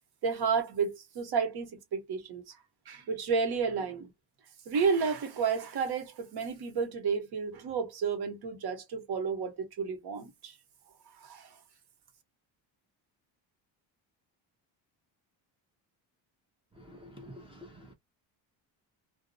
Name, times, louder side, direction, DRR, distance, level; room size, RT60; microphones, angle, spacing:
voice 1, 0.2-2.6 2.9-4.1 4.7-10.5 11.2-11.5, right 5 dB, 55° right, 1.0 m, -31 dB
voice 2, 16.7-17.9, equal, 10° right, 0.5 m, -49 dB
2.3 x 2.0 x 2.6 m
cardioid pair, 140°, 47 cm